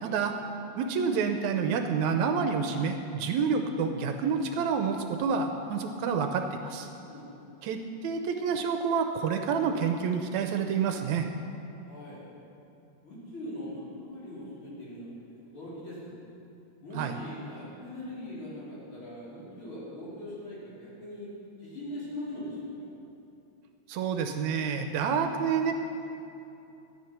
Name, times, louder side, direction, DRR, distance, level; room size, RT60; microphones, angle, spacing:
voice 1, 0.0-0.3 0.8-6.9 7.6-11.3 17.0-17.2 23.9-25.7, right 6 dB, 80° right, 6 dB, 1.9 m, -28 dB
voice 2, 7.1-7.6 11.9-12.2 13.0-16.2 16.8-21.3 21.6-22.9, left 1 dB, 45° left, -8 dB, 4.2 m, -41 dB
12.5 x 10.5 x 5.9 m, 2.8 s
omnidirectional pair, 3.4 m